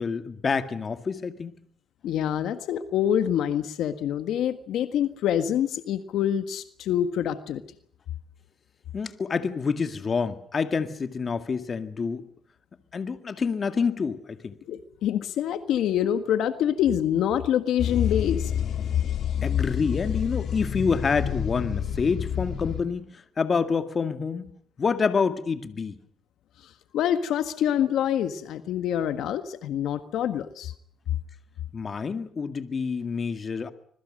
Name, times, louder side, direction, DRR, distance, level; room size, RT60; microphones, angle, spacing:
voice 1, 0.0-1.5 8.9-12.3 12.9-14.6 19.4-24.5 24.8-26.0 31.7-33.7, left 5 dB, 40° left, 2.1 m, -27 dB
voice 2, 2.0-7.6 14.7-18.5 26.6-30.7, left 10 dB, 80° left, 1.5 m, -26 dB
sound 1, 17.8-22.8, left 8 dB, 65° left, 3.4 m, -28 dB
25.5 x 21.5 x 6.6 m
cardioid pair, 90°, 0 cm